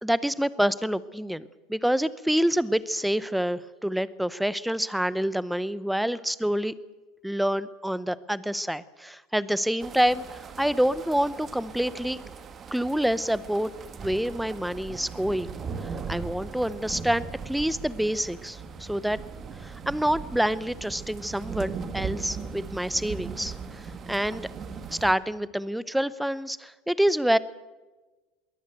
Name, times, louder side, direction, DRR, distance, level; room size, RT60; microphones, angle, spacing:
voice 1, 0.0-6.7 7.2-12.2 12.7-15.5 15.8-19.2 19.6-23.8 24.1-24.5 24.9-27.4, equal, ahead, 17 dB, 0.7 m, -27 dB
sound 1, 9.8-25.1, right 5 dB, 30° right, 1.8 m, -39 dB
22.0 x 17.5 x 8.0 m, 1.2 s
supercardioid pair, 135°, 0 cm